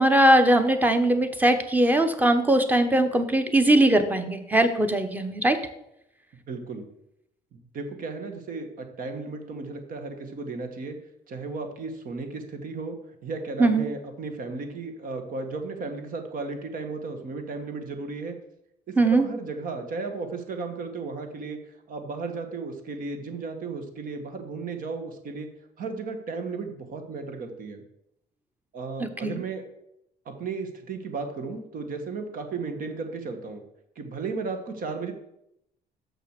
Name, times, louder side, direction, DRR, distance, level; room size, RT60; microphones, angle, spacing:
voice 1, 0.0-5.6 13.6-13.9 19.0-19.2 29.0-29.4, right 1 dB, 10° right, 8 dB, 1.0 m, -20 dB
voice 2, 6.5-6.9 7.5-11.0 11.3-13.0 13.2-18.4 18.9-21.6 21.9-25.5 25.8-27.8 28.7-29.6 30.2-33.6 33.9-35.1, right 4 dB, 55° right, 6 dB, 1.5 m, -34 dB
6.5 x 6.0 x 6.6 m, 0.80 s
cardioid pair, 110°, 17 cm